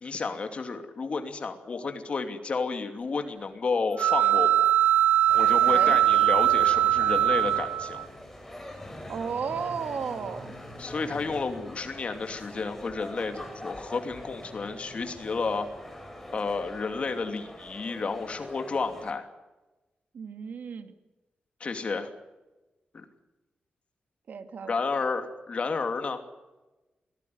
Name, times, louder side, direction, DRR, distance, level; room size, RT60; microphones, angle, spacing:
voice 1, 0.0-4.7 5.3-8.0 10.8-15.7 16.3-19.3 21.6-22.1 22.9-23.0 24.7-26.2, left 4 dB, 40° left, 7 dB, 2.7 m, -31 dB
sound 1, 4.0-8.1, right 12 dB, 85° right, 1.0 m, -21 dB
sound 2, 5.3-19.1, left 1 dB, 5° left, 5.2 m, -43 dB
voice 2, 5.5-6.0 9.1-10.6 20.1-20.9 24.3-24.8, right 6 dB, 65° right, 8 dB, 2.3 m, -34 dB
24.0 x 17.5 x 9.4 m, 1.1 s
wide cardioid pair, 155°, 3 cm